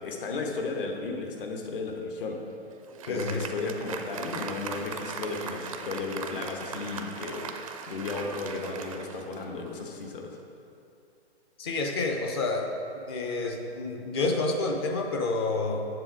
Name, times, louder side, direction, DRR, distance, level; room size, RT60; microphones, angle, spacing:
voice 1, 0.0-2.4 3.1-10.4, left 3 dB, 50° left, 2 dB, 1.2 m, -34 dB
Applause, 2.4-9.9, right 5 dB, 30° right, 0.4 m, -39 dB
voice 2, 3.0-3.4 11.6-12.7 13.1-15.9, left 3 dB, 25° left, 3 dB, 0.5 m, -29 dB
7.6 x 6.9 x 4.9 m, 2.7 s
hypercardioid pair, 145°, 34 cm